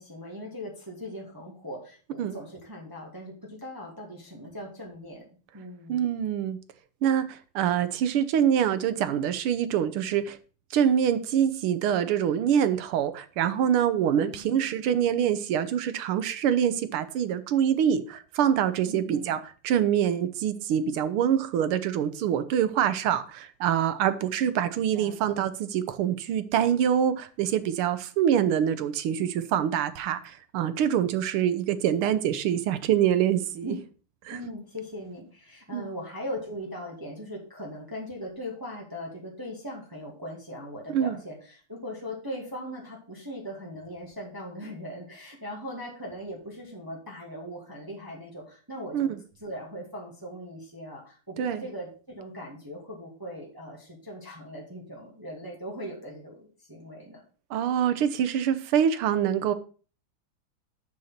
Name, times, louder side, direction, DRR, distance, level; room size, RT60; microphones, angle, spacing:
voice 1, 0.0-5.3 5.5-6.0 14.0-14.7 18.9-19.3 24.1-24.3 24.9-25.1 33.6-33.7 34.3-49.1 49.4-57.2, equal, 10° right, 2.0 m, -39 dB
voice 2, 5.9-6.6 7.0-10.4 10.7-19.4 19.6-33.7 34.2-34.4 35.7-35.9 40.9-41.2 48.9-49.2 51.4-51.6 57.5-59.5, right 9 dB, 90° right, 1.7 m, -25 dB
6.7 x 6.6 x 5.7 m
omnidirectional pair, 2.3 m